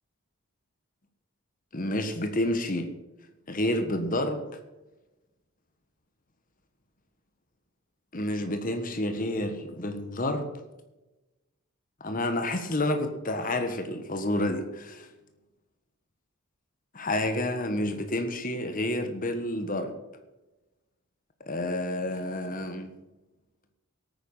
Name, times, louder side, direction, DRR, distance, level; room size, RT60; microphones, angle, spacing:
voice 1, 1.7-2.9 3.5-4.5 8.1-10.5 12.0-15.1 16.9-19.9 21.5-22.9, left 1 dB, 40° left, 7 dB, 1.4 m, -29 dB
17.0 x 9.3 x 5.6 m, 1.1 s
head